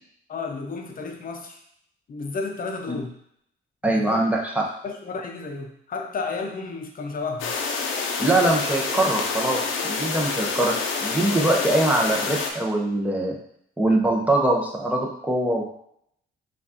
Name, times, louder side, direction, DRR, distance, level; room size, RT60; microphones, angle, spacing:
voice 1, 0.3-1.6 2.1-3.2 4.0-4.2 4.8-7.5, left 4 dB, 45° left, 3 dB, 0.8 m, -32 dB
voice 2, 3.8-4.5 8.2-10.7 11.0-13.3 13.8-15.7, right 1 dB, 5° right, -2 dB, 1.0 m, -22 dB
sound 1, 7.4-12.5, left 4 dB, 80° left, 0.7 m, -27 dB
5.9 x 2.6 x 2.9 m, 0.71 s
cardioid pair, 90°, 20 cm